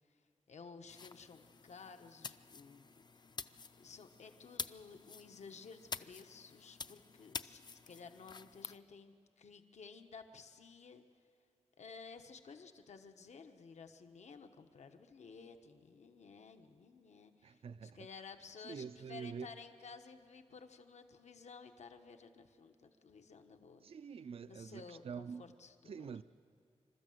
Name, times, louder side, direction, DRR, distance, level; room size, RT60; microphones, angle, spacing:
voice 1, 0.5-2.8 3.1-3.2 3.8-11.0 11.8-23.9 24.5-26.1, left 5 dB, 75° left, 1.1 m, -54 dB
sound 1, 0.9-8.8, left 5 dB, 40° left, 0.4 m, -49 dB
voice 2, 17.4-18.2 18.6-19.5 23.8-25.5 25.8-26.2, right 6 dB, 55° right, 0.4 m, -46 dB
27.0 x 13.0 x 7.7 m
wide cardioid pair, 155°, 12 cm